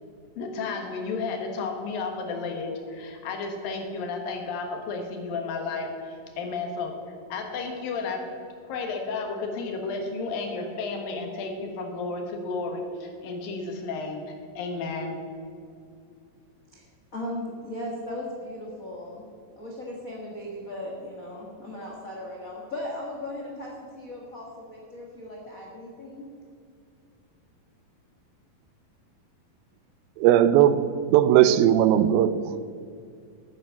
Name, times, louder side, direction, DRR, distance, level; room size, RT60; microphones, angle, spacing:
voice 1, 0.4-7.0 7.3-8.3 8.7-15.2, left 4 dB, 75° left, 3 dB, 3.2 m, -32 dB
voice 2, 17.1-19.2 19.6-26.3, left 1 dB, 40° left, -3 dB, 1.1 m, -37 dB
voice 3, 30.2-32.7, right 11 dB, 90° right, 13 dB, 2.5 m, -19 dB
9.9 x 9.5 x 7.1 m, 2.4 s
omnidirectional pair, 4.2 m